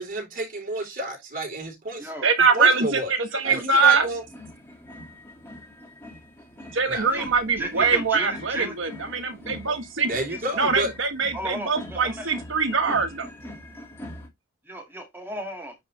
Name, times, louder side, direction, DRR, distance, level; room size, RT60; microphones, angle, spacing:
voice 1, 0.0-2.1 2.5-3.1 3.4-4.2 6.9-7.1 10.1-10.9, right 1 dB, 45° right, 3.7 m, -30 dB
voice 2, 2.2-4.1 6.7-10.1 10.6-13.3, right 4 dB, 65° right, 1.4 m, -22 dB
voice 3, 3.3-3.8 7.1-8.7 10.3-10.4 11.3-12.2 14.7-15.7, equal, 10° right, 2.2 m, -35 dB
sound 1, 3.8-14.3, left 1 dB, 10° left, 2.2 m, -42 dB
9.3 x 4.0 x 3.3 m
head